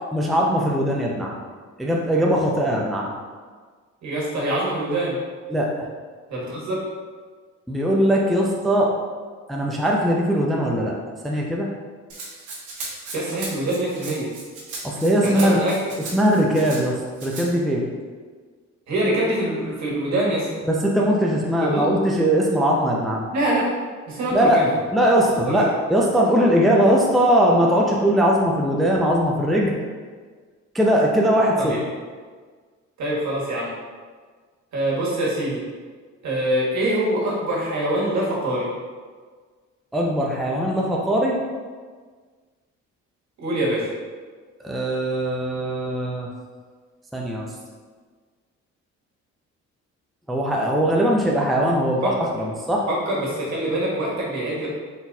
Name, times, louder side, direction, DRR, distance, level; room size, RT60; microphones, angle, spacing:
voice 1, 0.1-1.3 1.8-3.1 5.5-5.7 7.7-8.9 9.5-10.9 11.2-11.7 14.8-15.6 16.1-17.9 20.7-23.2 24.3-24.6 24.9-29.7 30.7-31.8 39.9-41.4 44.6-46.3 47.1-47.5 50.3-52.9, equal, ahead, -2 dB, 0.4 m, -20 dB
voice 2, 4.0-5.2 6.3-6.8 13.1-14.3 15.2-15.7 18.9-20.5 21.6-21.8 23.3-23.6 24.1-24.7 25.3-25.6 31.6-31.8 33.0-33.7 34.7-35.6 36.2-38.7 43.4-43.9 52.0-52.1 52.9-54.7, right 1 dB, 65° right, -5 dB, 1.5 m, -24 dB
Rattle (instrument), 12.1-16.8 17.2-17.5, right 3 dB, 85° right, 1.1 m, -36 dB
4.1 x 3.9 x 2.3 m, 1.5 s
cardioid pair, 90°, 30 cm